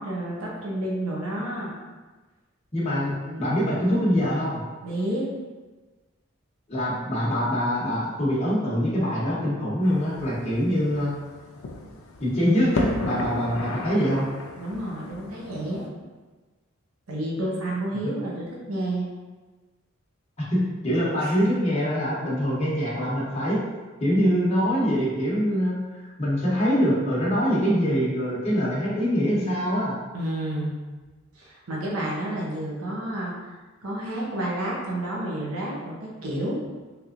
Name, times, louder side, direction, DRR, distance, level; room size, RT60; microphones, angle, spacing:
voice 1, 0.0-1.7 3.3-3.7 4.8-5.3 14.6-15.9 17.1-19.1 21.2-21.3 30.1-30.7 31.3-33.3 33.8-36.6, right 1 dB, 85° right, -4 dB, 0.8 m, -30 dB
voice 2, 2.7-4.6 6.7-11.1 12.2-14.3 18.0-18.1 20.5-23.6 24.0-30.0, equal, 30° left, -8 dB, 0.8 m, -24 dB
sound 1, 9.8-15.9, left 2 dB, 75° left, 0.4 m, -35 dB
3.4 x 3.0 x 2.5 m, 1.3 s
head